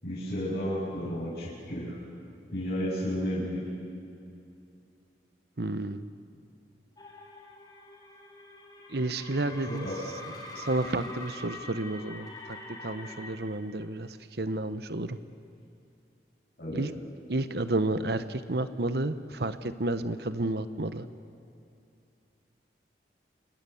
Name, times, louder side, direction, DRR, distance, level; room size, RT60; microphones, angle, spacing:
voice 1, 0.0-2.0 2.5-3.6 9.6-9.9 16.6-16.8, equal, 60° left, -9 dB, 7.8 m, -32 dB
voice 2, 5.6-6.1 8.9-9.9 10.5-15.2 16.7-16.9 17.3-21.1, right 2 dB, 65° right, 11 dB, 1.0 m, -31 dB
sound 1, 7.0-13.3, left 2 dB, 25° left, 3.3 m, -44 dB
29.0 x 28.5 x 7.2 m, 2.6 s
head